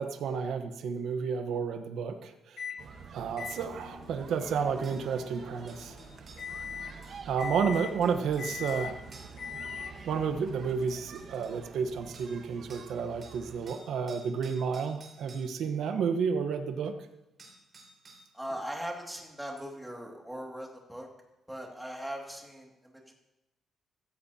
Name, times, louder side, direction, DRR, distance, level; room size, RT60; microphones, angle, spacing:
voice 1, 0.0-2.6 3.1-6.0 7.2-9.0 10.1-16.9, right 6 dB, 75° right, 7 dB, 1.1 m, -31 dB
Microwave oven, 2.6-2.8 3.4-10.2, left 7 dB, 55° left, 1.2 m, -42 dB
sound 1, 2.8-13.8, right 5 dB, 55° right, 1.2 m, -48 dB
sound 2, 4.0-4.1 4.8-5.0 5.7-6.5 7.0-8.8 9.1-9.4 10.4-10.5 10.9-11.6 12.1-12.4 12.7-12.9 13.2-15.5 17.0-17.1 17.4-18.3 19.6-19.7, right 3 dB, 40° right, 4.7 m, -54 dB
voice 2, 18.3-21.1 21.5-23.1, equal, 5° right, 0 dB, 2.2 m, -40 dB
15.5 x 14.5 x 2.8 m, 0.93 s
cardioid pair, 125°, 0 cm